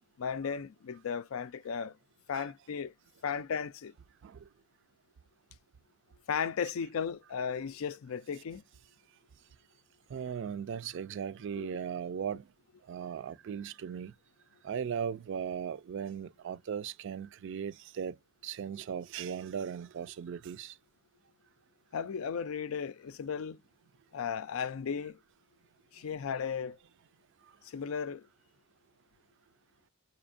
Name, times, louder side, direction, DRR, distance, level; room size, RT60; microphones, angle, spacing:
voice 1, 0.2-1.9 2.3-2.9 3.2-3.9 6.3-8.6 11.6-11.7 21.9-23.6 24.1-25.2 25.9-26.8 27.6-28.3, left 6 dB, 85° left, 0.4 m, -35 dB
voice 2, 10.1-12.4 12.9-14.1 14.6-18.2 18.4-20.7, right 7 dB, 60° right, 0.3 m, -38 dB
4.2 x 2.7 x 2.5 m
head